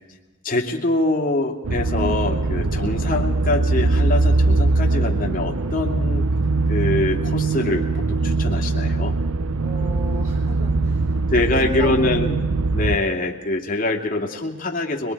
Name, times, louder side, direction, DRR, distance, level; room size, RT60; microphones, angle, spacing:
voice 1, 0.4-6.3 6.7-9.1 11.3-12.4 12.7-15.1, left 2 dB, 40° left, 1 dB, 2.6 m, -24 dB
sound 1, 1.6-13.0, right 3 dB, 85° right, 0.7 m, -21 dB
voice 2, 9.6-12.2, equal, 40° right, -1 dB, 4.2 m, -35 dB
25.0 x 22.5 x 4.7 m, 1.1 s
head